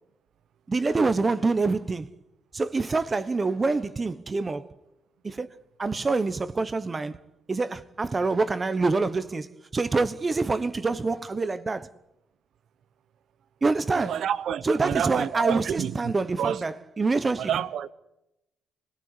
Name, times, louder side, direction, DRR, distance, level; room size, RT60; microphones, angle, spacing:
voice 1, 0.7-2.1 2.5-4.7 5.2-7.2 7.5-11.9 13.6-14.2 14.6-17.5, right 3 dB, 30° right, 1.1 m, -26 dB
voice 2, 14.0-15.9 16.4-16.6 17.4-17.9, right 9 dB, 70° right, 1.0 m, -28 dB
26.0 x 17.5 x 8.3 m
cardioid pair, 90°, 0 cm